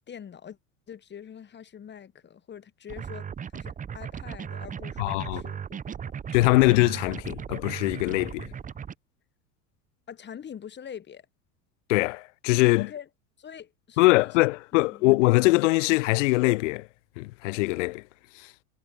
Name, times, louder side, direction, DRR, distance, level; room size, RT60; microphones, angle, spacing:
voice 1, 0.1-0.6 0.9-3.3 3.5-5.8 10.1-11.3 12.8-13.1 13.4-14.5 14.7-15.2, left 8 dB, 25° left, 1.4 m, -44 dB
sound 1, 2.9-8.9, right 7 dB, 15° right, 0.9 m, -37 dB
voice 2, 5.0-5.4 6.3-8.5 11.9-12.9 14.0-16.9 17.2-18.0 18.4-18.5, left 22 dB, 55° left, 0.5 m, -22 dB
figure-of-eight pair, 75°, 45 cm